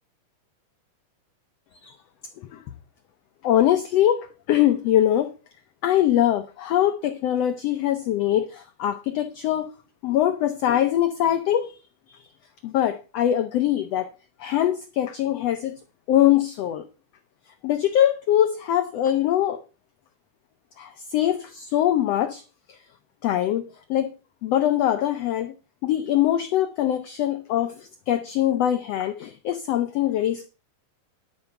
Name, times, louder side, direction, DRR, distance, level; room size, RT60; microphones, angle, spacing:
voice 1, 3.4-5.3 5.8-9.7 10.0-11.7 12.6-14.1 14.4-15.8 16.1-16.8 17.6-19.6 20.8-22.4 23.2-24.1 24.4-25.5 25.8-30.5, left 11 dB, 85° left, 1.4 m, -22 dB
11.5 x 5.3 x 6.7 m
omnidirectional pair, 3.8 m